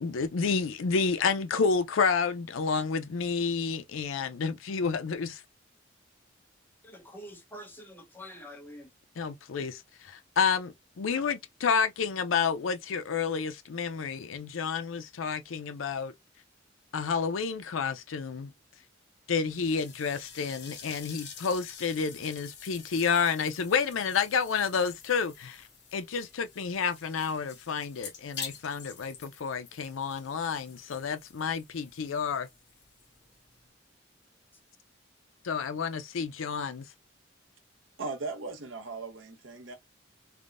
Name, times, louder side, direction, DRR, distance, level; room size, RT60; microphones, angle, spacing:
voice 1, 0.0-5.3 9.2-9.8 10.4-10.7 11.0-16.1 16.9-18.5 19.3-25.6 25.9-32.5 35.4-36.9, left 5 dB, 85° left, 0.5 m, -30 dB
voice 2, 6.8-8.9, equal, 10° left, 0.8 m, -46 dB
sound 1, 19.5-33.7, left 6 dB, 60° left, 1.0 m, -48 dB
voice 3, 38.0-39.7, right 3 dB, 80° right, 0.9 m, -38 dB
3.4 x 2.2 x 2.4 m
head